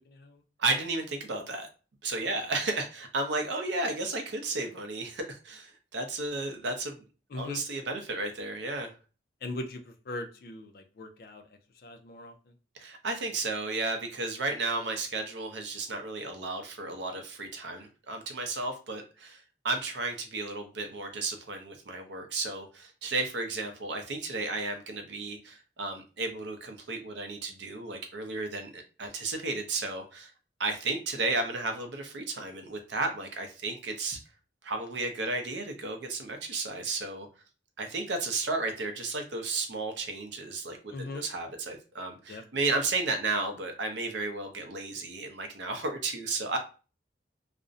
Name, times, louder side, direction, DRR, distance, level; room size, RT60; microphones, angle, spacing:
voice 1, 0.1-0.4 7.3-7.6 9.4-11.4 11.8-12.3 40.9-41.3 42.3-42.4, left 2 dB, 50° left, 6 dB, 0.4 m, -39 dB
voice 2, 0.6-1.7 2.0-7.0 7.3-8.9 12.7-30.3 30.6-34.2 34.6-37.3 37.8-46.6, right 3 dB, 70° right, 5 dB, 0.5 m, -33 dB
2.4 x 2.0 x 2.5 m, 0.35 s
head